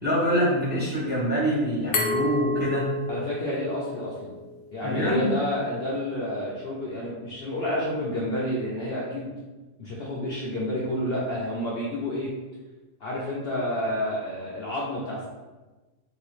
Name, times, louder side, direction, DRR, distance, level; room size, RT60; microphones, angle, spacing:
voice 1, 0.0-2.9 4.8-5.3, equal, 10° right, -7 dB, 0.8 m, -25 dB
Glass, 1.9-4.7, left 3 dB, 85° left, 1.0 m, -30 dB
voice 2, 3.1-4.3 4.7-9.3 9.8-12.3 13.0-15.3, left 1 dB, 60° left, -5 dB, 0.7 m, -29 dB
3.1 x 2.9 x 3.1 m, 1.2 s
omnidirectional pair, 1.4 m